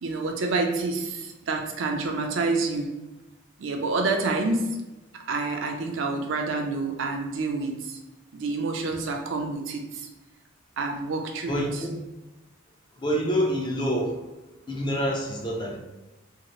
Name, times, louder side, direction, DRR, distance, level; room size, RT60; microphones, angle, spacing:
voice 1, 0.0-2.9 3.6-4.7 5.3-8.0 8.3-10.1 10.8-11.8, right 3 dB, 70° right, 3 dB, 0.4 m, -28 dB
voice 2, 11.5-12.0 13.0-14.2 14.7-15.8, equal, 20° left, -1 dB, 0.4 m, -27 dB
2.8 x 2.4 x 3.0 m, 1.1 s
head